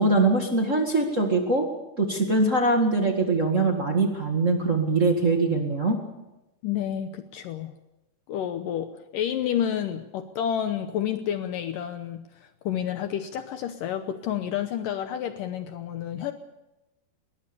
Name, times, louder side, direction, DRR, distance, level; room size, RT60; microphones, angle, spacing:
voice 1, 0.0-1.7 2.0-6.0, right 2 dB, 35° right, 2 dB, 1.2 m, -22 dB
voice 2, 6.6-7.7 8.3-16.3, left 9 dB, 75° left, 8 dB, 2.1 m, -30 dB
21.0 x 20.0 x 7.0 m, 0.96 s
omnidirectional pair, 4.7 m